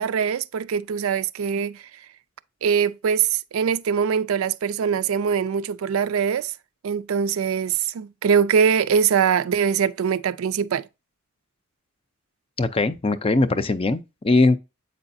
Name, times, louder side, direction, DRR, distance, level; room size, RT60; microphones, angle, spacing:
voice 1, 0.0-1.8 2.6-6.5 6.8-10.9, right 7 dB, 75° right, 0.4 m, -22 dB
voice 2, 12.6-14.6, left 2 dB, 25° left, 0.4 m, -20 dB
7.8 x 4.8 x 2.6 m
head